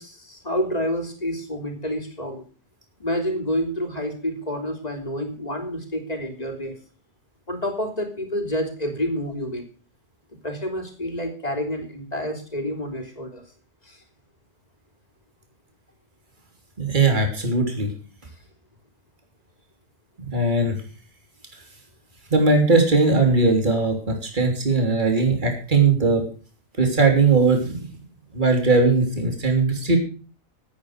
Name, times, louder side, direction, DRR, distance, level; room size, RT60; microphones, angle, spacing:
voice 1, 0.0-2.4 3.0-6.8 7.5-9.6 10.4-13.4 13.9-14.0, equal, 30° left, 5 dB, 3.5 m, -28 dB
voice 2, 16.8-17.9 20.3-20.8 22.3-26.2 26.8-27.9 28.3-30.0, right 3 dB, 35° right, 3 dB, 3.4 m, -19 dB
15.5 x 9.3 x 6.6 m, 0.39 s
omnidirectional pair, 1.4 m